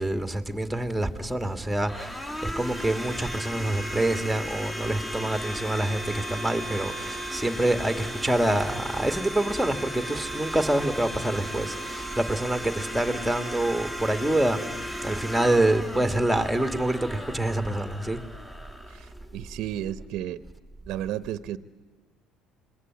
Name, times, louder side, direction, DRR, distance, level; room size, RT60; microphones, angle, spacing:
voice 1, 0.0-14.6 15.0-18.2, right 1 dB, ahead, 2.3 m, -26 dB
Domestic sounds home sounds, 0.8-19.7, equal, 20° left, 4.0 m, -36 dB
voice 2, 18.9-20.4 20.9-21.6, right 12 dB, 65° right, 1.0 m, -33 dB
27.0 x 22.0 x 9.6 m
supercardioid pair, 85°, 0 cm